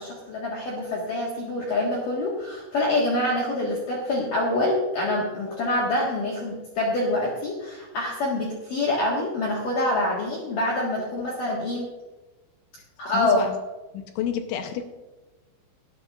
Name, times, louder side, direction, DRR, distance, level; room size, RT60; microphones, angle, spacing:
voice 1, 0.0-11.9 13.0-13.5, left 1 dB, 60° left, -4 dB, 2.4 m, -26 dB
voice 2, 13.1-13.6 13.9-14.8, left 9 dB, 80° left, 6 dB, 3.1 m, -30 dB
19.0 x 11.0 x 2.5 m, 1.1 s
omnidirectional pair, 5.9 m